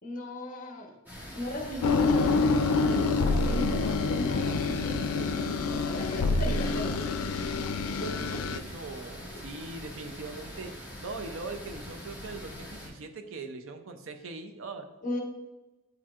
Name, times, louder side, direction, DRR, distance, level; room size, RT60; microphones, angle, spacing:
voice 1, 0.0-0.9 1.3-2.4 2.7-7.1 7.9-8.4 15.0-15.2, left 1 dB, 35° left, 1 dB, 1.0 m, -38 dB
sound 1, 1.1-12.9, equal, 10° right, 1.6 m, -43 dB
sound 2, 1.8-8.6, left 3 dB, 85° left, 0.4 m, -27 dB
voice 2, 8.3-14.9, right 3 dB, 65° right, 7 dB, 0.6 m, -41 dB
9.4 x 4.4 x 2.4 m, 1.1 s
head